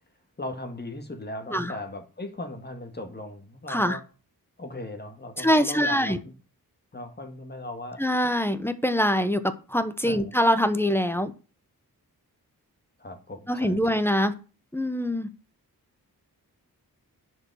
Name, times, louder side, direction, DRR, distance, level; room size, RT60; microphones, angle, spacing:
voice 1, 0.4-4.0 4.6-6.3 6.9-8.1 10.0-10.3 13.0-13.8, left 2 dB, 25° left, 2.1 m, -38 dB
voice 2, 3.7-4.0 5.4-6.2 8.0-11.3 13.5-14.3 14.7-15.3, equal, 5° left, 1.0 m, -24 dB
10.5 x 5.5 x 6.3 m
wide cardioid pair, 115°, 37 cm